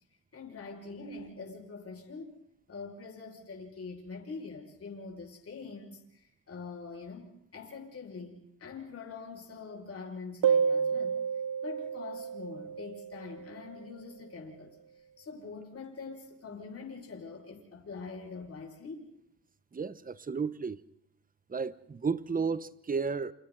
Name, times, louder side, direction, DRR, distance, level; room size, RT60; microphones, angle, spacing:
voice 1, 0.3-2.4 2.7-11.2 11.6-14.8 15.2-19.1, left 4 dB, 40° left, 5.9 m, -44 dB
sound 1, 10.4-13.7, right 7 dB, 60° right, 0.9 m, -30 dB
voice 2, 19.7-20.8 21.5-23.3, right 5 dB, 25° right, 1.0 m, -33 dB
29.0 x 29.0 x 4.0 m
cardioid pair, 110°, 37 cm